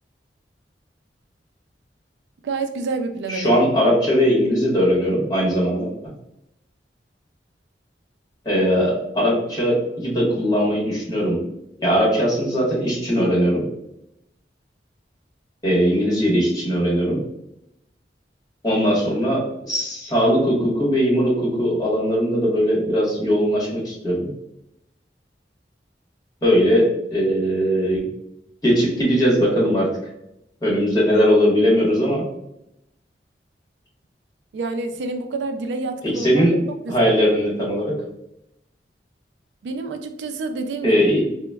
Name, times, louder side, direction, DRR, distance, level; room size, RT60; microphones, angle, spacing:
voice 1, 2.4-3.6 34.5-36.5 36.8-37.1 39.6-41.1, right 3 dB, 75° right, 7 dB, 0.3 m, -28 dB
voice 2, 3.3-5.9 8.4-11.4 11.8-13.6 15.6-17.2 18.6-19.4 19.7-24.3 26.4-28.0 28.6-29.9 30.6-32.3 36.1-36.5 36.9-37.9 40.8-41.2, equal, 20° left, -5 dB, 1.2 m, -19 dB
3.9 x 2.1 x 2.2 m, 0.82 s
head